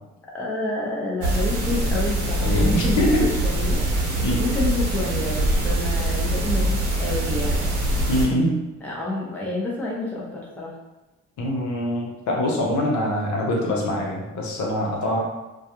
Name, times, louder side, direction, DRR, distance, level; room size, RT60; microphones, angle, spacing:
voice 1, 0.3-3.8 4.4-7.7 8.8-10.7, left 2 dB, 5° left, -5 dB, 0.6 m, -29 dB
sound 1, 1.2-8.2, right 1 dB, 85° right, 0.7 m, -23 dB
voice 2, 2.4-3.3 4.2-4.4 8.1-8.6 11.4-15.2, equal, 75° left, -1 dB, 0.8 m, -24 dB
2.3 x 2.3 x 2.9 m, 1.1 s
cardioid pair, 90°, 30 cm